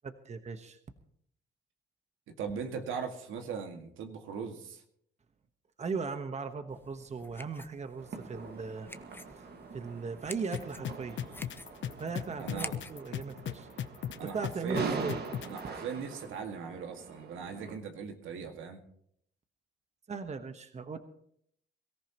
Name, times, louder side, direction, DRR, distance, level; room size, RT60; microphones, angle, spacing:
voice 1, 0.0-0.8 5.8-8.9 9.7-11.2 12.0-13.7 14.2-15.2 20.1-21.0, right 4 dB, 35° right, 8 dB, 1.3 m, -38 dB
voice 2, 2.4-4.8 12.4-12.7 14.2-15.0 15.4-18.8, right 6 dB, 85° right, 4 dB, 2.0 m, -39 dB
sound 1, 6.7-13.0, left 2 dB, 10° left, 0.9 m, -49 dB
sound 2, 8.0-17.8, right 4 dB, 55° right, 1.9 m, -43 dB
sound 3, 10.5-15.6, left 10 dB, 70° left, 0.8 m, -36 dB
23.0 x 14.0 x 3.0 m, 0.68 s
cardioid pair, 90°, 20 cm